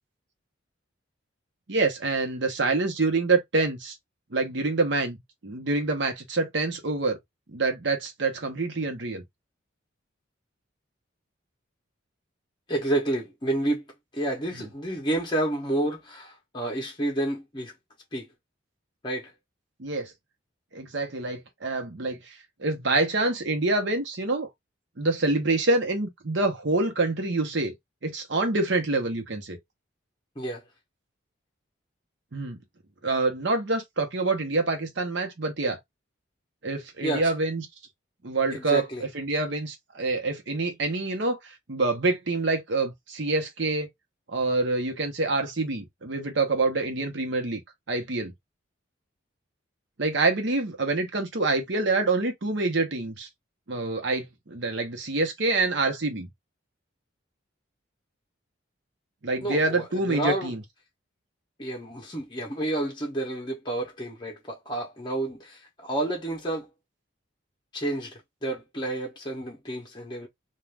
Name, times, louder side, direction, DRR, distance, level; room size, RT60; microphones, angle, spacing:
voice 1, 1.7-3.9 4.3-7.2 7.5-9.2 14.6-14.7 19.8-20.1 20.7-24.5 25.0-27.7 28.0-29.6 32.3-32.6 33.0-35.8 36.6-37.7 38.2-43.9 44.3-47.6 47.9-48.3 50.0-53.3 53.7-56.3 59.2-60.6, right 3 dB, 60° right, 0.9 m, -26 dB
voice 2, 12.7-13.8 14.1-17.7 18.1-18.3 19.0-19.3 30.4-30.6 37.0-37.3 38.5-39.0 59.4-60.5 61.6-66.7 67.7-70.3, right 1 dB, 25° left, 0.7 m, -30 dB
2.5 x 2.4 x 3.2 m
head